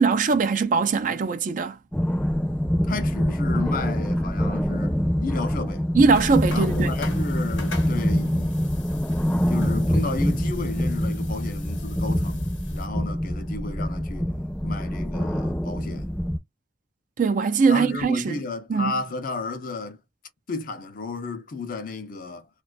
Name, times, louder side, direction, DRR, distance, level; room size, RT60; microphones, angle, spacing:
voice 1, 0.0-1.8 5.9-6.9 17.2-18.4 18.7-18.9, right 4 dB, 45° right, 0.4 m, -21 dB
sound 1, 1.9-16.4, equal, 5° left, 0.6 m, -25 dB
voice 2, 2.8-5.9 6.5-8.5 9.5-14.3 14.6-16.1 17.7-20.0 20.5-22.5, left 3 dB, 50° left, 0.5 m, -33 dB
sound 2, 6.1-12.9, left 4 dB, 85° left, 0.8 m, -42 dB
2.4 x 2.3 x 2.2 m
head